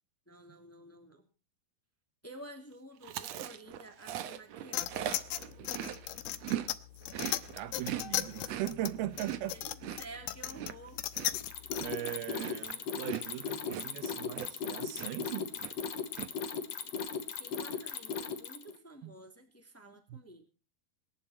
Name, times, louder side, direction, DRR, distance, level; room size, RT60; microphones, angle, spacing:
voice 1, 0.3-1.3 2.2-4.9 9.3-11.0 17.4-20.4, right 1 dB, 5° left, 2.3 m, -51 dB
Chewing mastication, 3.0-6.7 7.0-14.7 15.0-15.3 15.6-16.3, right 11 dB, 65° right, 1.7 m, -40 dB
sound 1, 4.7-12.0, left 14 dB, 80° left, 2.7 m, -37 dB
voice 2, 7.5-9.6 11.8-15.5 19.0-19.1 20.1-20.2, right 13 dB, 85° right, 2.9 m, -39 dB
Mechanisms, 11.3-18.8, left 6 dB, 55° left, 2.4 m, -37 dB
23.5 x 11.0 x 4.3 m
omnidirectional pair, 4.3 m